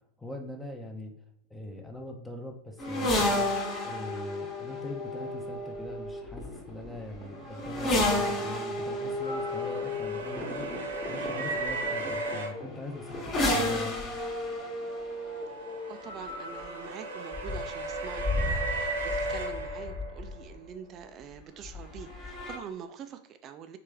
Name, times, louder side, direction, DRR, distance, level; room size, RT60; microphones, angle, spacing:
voice 1, 0.2-1.1 1.5-3.5 3.8-14.0, left 1 dB, 10° left, 2 dB, 0.6 m, -42 dB
sound 1, 2.8-20.6 21.6-22.6, left 1 dB, 30° left, 1.1 m, -32 dB
sound 2, 9.2-12.5 14.9-20.4, right 2 dB, 80° right, 0.8 m, -35 dB
voice 2, 15.9-23.8, right 7 dB, 35° right, 9 dB, 0.3 m, -45 dB
3.3 x 3.3 x 3.3 m, 0.72 s
hypercardioid pair, 95°, 0 cm